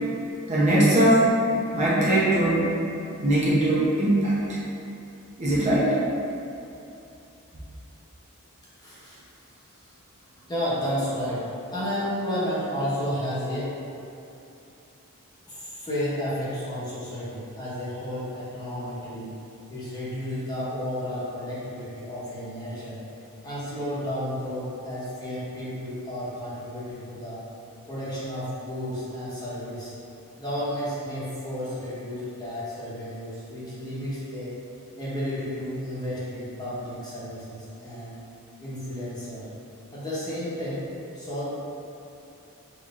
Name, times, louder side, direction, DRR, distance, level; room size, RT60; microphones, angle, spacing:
voice 1, 0.5-1.3 1.7-2.7 3.2-4.3 5.4-6.0, right 1 dB, 30° right, -9 dB, 0.8 m, -20 dB
voice 2, 8.8-9.2 9.8-9.9 10.3-13.7 15.5-19.3 19.7-23.0 23.4-27.4 27.9-29.9 30.4-34.5 35.0-38.2 38.6-39.5 39.9-40.8 41.1-41.4, equal, 20° left, -10 dB, 1.1 m, -32 dB
5.7 x 2.9 x 2.5 m, 2.8 s
head